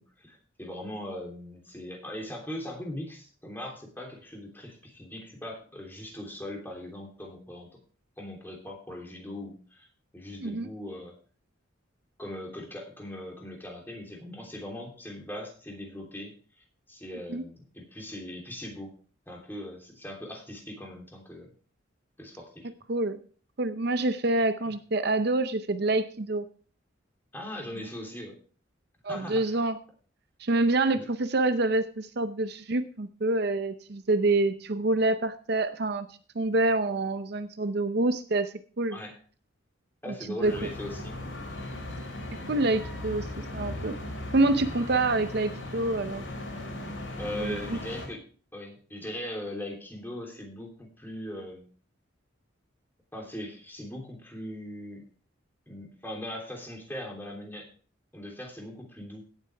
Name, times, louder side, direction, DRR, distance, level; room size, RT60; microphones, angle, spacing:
voice 1, 0.2-7.7 8.2-9.9 10.1-11.2 12.2-16.3 16.9-18.9 19.3-21.5 22.2-22.7 24.6-24.7 27.3-28.4 29.1-29.4 30.9-31.0 38.9-39.1 40.0-41.1 41.6-41.7 47.2-48.2 48.5-51.7 53.1-55.0 55.7-57.7 58.1-59.2, left 1 dB, 10° left, 0 dB, 3.1 m, -40 dB
voice 2, 23.6-26.5 29.0-29.8 30.4-36.1 36.3-39.0 40.4-40.7 42.5-44.0 44.3-46.2 46.6-46.9 47.4-47.6, right 2 dB, 55° right, 10 dB, 0.6 m, -27 dB
sound 1, 40.4-48.1, left 1 dB, 70° left, 4.9 m, -38 dB
17.0 x 8.2 x 3.4 m, 0.42 s
head